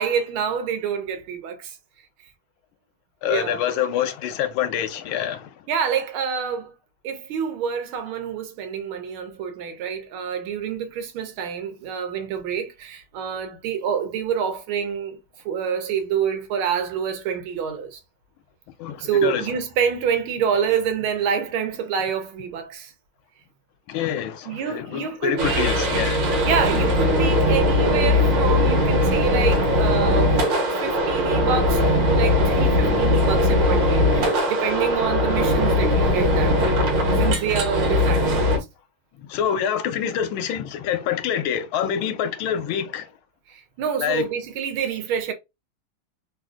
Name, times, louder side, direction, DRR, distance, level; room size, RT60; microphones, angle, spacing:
voice 1, 0.0-1.7 3.3-3.6 5.7-6.7 7.0-15.2 15.4-18.0 19.0-22.9 24.4-25.7 26.4-30.4 30.8-36.8 37.2-38.6 43.5-45.3, right 7 dB, 90° right, 1.6 m, -27 dB
voice 2, 3.2-5.5 18.8-19.6 23.9-26.3 39.2-43.1 44.0-44.3, left 9 dB, 80° left, 1.4 m, -26 dB
sound 1, 25.4-38.6, left 1 dB, 70° right, 1.6 m, -20 dB
3.6 x 2.5 x 2.4 m
omnidirectional pair, 2.2 m